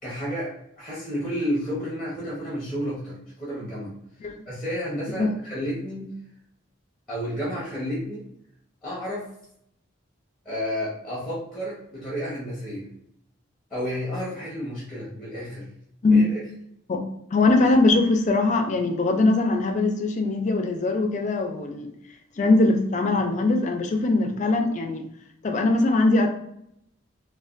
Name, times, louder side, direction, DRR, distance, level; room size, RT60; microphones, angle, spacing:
voice 1, 0.0-3.9 4.5-6.1 7.1-8.2 8.8-9.2 10.4-12.9 13.7-15.6 16.1-16.4, equal, 5° left, -7 dB, 0.8 m, -31 dB
voice 2, 17.3-21.9 22.4-25.0 25.4-26.3, left 2 dB, 35° left, 4 dB, 0.3 m, -21 dB
3.2 x 2.2 x 2.4 m, 0.74 s
head